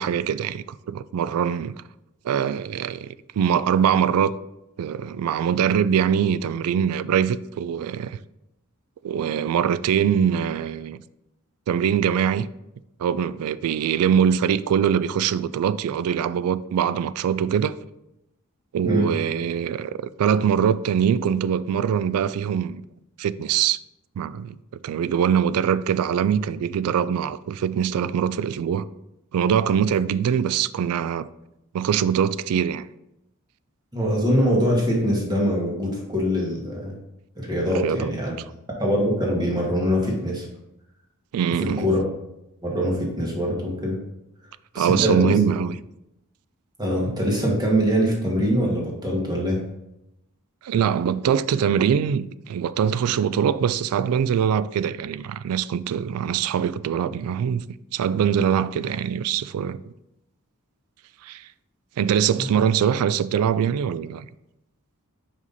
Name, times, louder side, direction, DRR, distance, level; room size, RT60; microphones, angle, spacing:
voice 1, 0.0-1.7 2.2-4.3 4.8-8.2 9.0-11.0 11.7-12.5 13.0-17.8 18.7-22.8 23.2-23.8 24.2-24.6 24.8-28.8 29.3-31.3 31.7-32.9 37.8-38.1 41.3-41.9 44.8-45.7 50.6-57.6 57.9-59.9 61.2-61.5 62.0-64.3, right 8 dB, 90° right, 0.3 m, -23 dB
voice 2, 33.9-36.9 37.4-38.3 38.8-40.4 41.6-42.0 42.6-44.0 44.7-45.4 46.8-49.6 62.4-62.5, equal, 20° right, 1.5 m, -23 dB
5.4 x 5.0 x 4.1 m
head